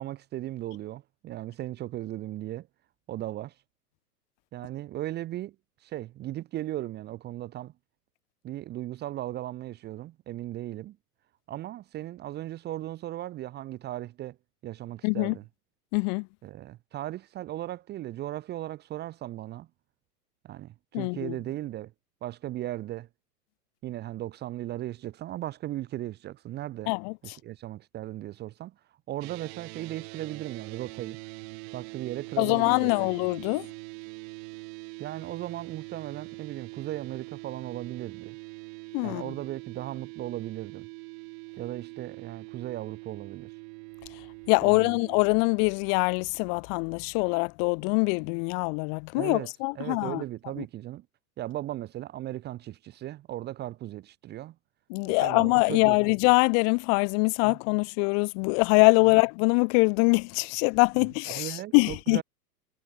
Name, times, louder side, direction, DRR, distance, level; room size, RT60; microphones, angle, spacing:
voice 1, 0.0-2.7 3.1-3.6 4.5-5.5 5.8-7.7 8.4-11.0 11.5-14.4 14.6-15.4 16.4-19.7 20.4-21.9 22.2-23.1 23.8-26.9 27.2-28.7 29.1-31.2 31.7-33.1 35.0-38.4 39.0-40.9 41.6-43.6 44.6-45.0 49.1-49.5 49.7-51.1 51.4-54.5 55.0-56.0 57.4-57.6 61.3-62.2, right 14 dB, 20° right, 1.1 m, -37 dB
voice 2, 15.0-15.3 15.9-16.3 20.9-21.3 26.9-27.1 32.4-33.7 38.9-39.2 44.5-50.2 54.9-62.2, left 40 dB or more, 35° left, 1.0 m, -24 dB
sound 1, 29.2-45.3, right 38 dB, 40° right, 5.3 m, -43 dB
hypercardioid pair, 135°, 48 cm